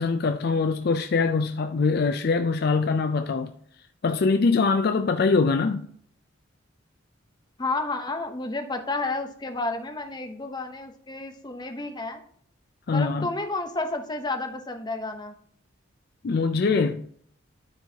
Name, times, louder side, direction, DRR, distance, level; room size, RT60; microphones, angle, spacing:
voice 1, 0.0-3.5 4.0-5.9 12.9-13.3 16.2-17.0, left 4 dB, 50° left, 0.4 m, -23 dB
voice 2, 7.6-12.2 12.9-15.4, left 2 dB, 20° left, 0.8 m, -31 dB
12.5 x 4.6 x 2.8 m
head